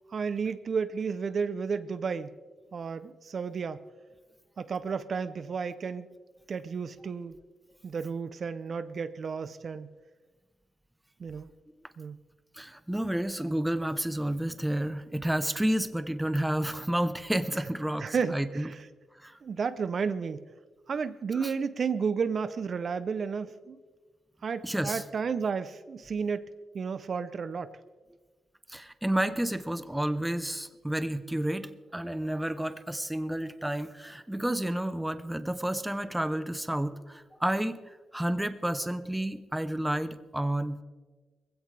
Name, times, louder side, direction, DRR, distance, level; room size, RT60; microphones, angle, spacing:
voice 1, 0.1-2.3 2.7-3.8 4.6-6.1 6.5-7.4 7.8-9.9 11.2-11.5 12.0-12.2 17.6-17.7 18.0-18.9 19.4-20.4 20.9-23.8 24.4-27.7, right 5 dB, 50° right, 13 dB, 0.6 m, -32 dB
voice 2, 12.5-18.7 19.2-19.4 21.3-21.5 24.6-25.0 28.7-40.8, right 1 dB, 5° right, 11 dB, 0.8 m, -30 dB
20.5 x 16.0 x 3.4 m, 1.4 s
cardioid pair, 100°, 0 cm